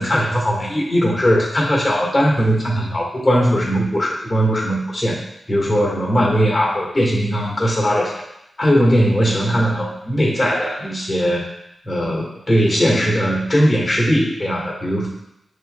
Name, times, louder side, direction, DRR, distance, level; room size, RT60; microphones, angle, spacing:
voice 1, 0.0-5.2 5.5-8.1 8.6-11.5 11.8-15.1, equal, 35° left, -3 dB, 1.7 m, -19 dB
6.5 x 3.1 x 2.3 m, 0.83 s
cardioid pair, 50°, 0 cm